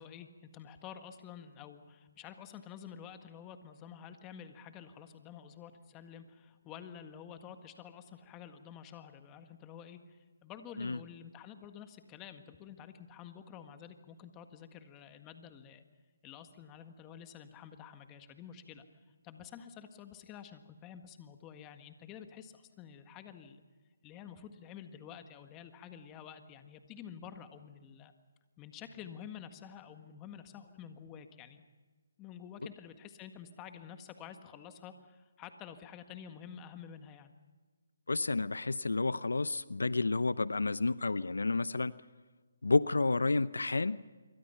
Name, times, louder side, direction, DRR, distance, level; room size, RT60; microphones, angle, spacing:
voice 1, 0.0-15.8 16.2-18.8 19.2-23.6 24.0-28.1 28.6-31.6 32.2-37.3, left 8 dB, 20° left, 8 dB, 1.7 m, -50 dB
voice 2, 38.1-41.9 42.6-44.0, left 3 dB, 85° left, 17 dB, 0.7 m, -30 dB
27.0 x 23.5 x 5.8 m, 1.4 s
hypercardioid pair, 155°, 0 cm